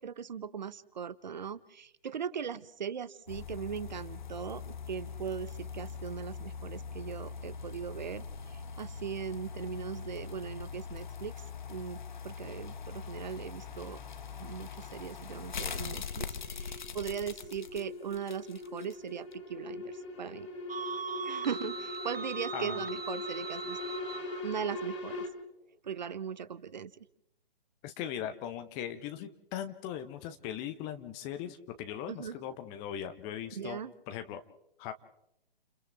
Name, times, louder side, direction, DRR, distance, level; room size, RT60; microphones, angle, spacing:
voice 1, 0.0-12.0 12.2-14.0 14.3-20.5 21.2-23.8 24.2-25.2 25.8-27.1 32.1-32.4 33.5-33.9, right 7 dB, 50° right, 17 dB, 1.0 m, -39 dB
sound 1, 3.3-18.9 19.3-19.4, left 6 dB, 50° left, 1.4 m, -42 dB
sound 2, 14.8-25.3, left 2 dB, 30° left, 3.4 m, -42 dB
sound 3, 20.7-24.4, right 5 dB, 80° right, 0.8 m, -40 dB
voice 2, 27.8-33.8 34.1-34.4 34.8-34.9, left 10 dB, 15° left, 8 dB, 0.8 m, -39 dB
30.0 x 29.0 x 3.5 m, 0.80 s
figure-of-eight pair, 135°, 30 cm